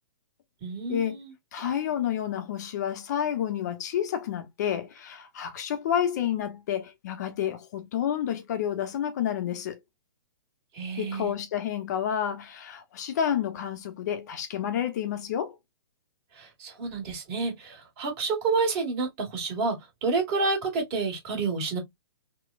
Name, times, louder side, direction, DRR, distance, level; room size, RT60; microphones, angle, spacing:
voice 1, 0.6-1.3 10.7-11.3 16.3-21.8, right 4 dB, 35° right, 1.7 m, -29 dB
voice 2, 1.5-9.8 11.0-15.6, left 9 dB, 45° left, 0.7 m, -29 dB
4.0 x 2.2 x 2.4 m
figure-of-eight pair, 120°, 13 cm